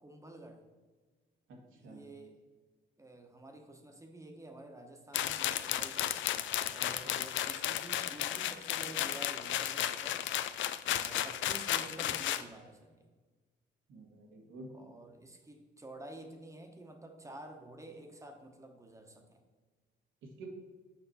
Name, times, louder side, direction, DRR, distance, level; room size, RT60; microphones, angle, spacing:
voice 1, 0.0-0.6 1.7-2.4 3.0-6.1 6.7-10.2 10.9-13.1 14.7-19.4, right 1 dB, 15° right, 4 dB, 1.1 m, -50 dB
voice 2, 1.5-2.1 7.0-7.1 13.9-14.7 20.2-20.5, right 2 dB, 80° right, 0 dB, 1.6 m, -50 dB
sound 1, 5.1-12.4, left 12 dB, 70° left, 0.4 m, -34 dB
7.0 x 5.1 x 4.2 m, 1.3 s
cardioid pair, 90°, 20 cm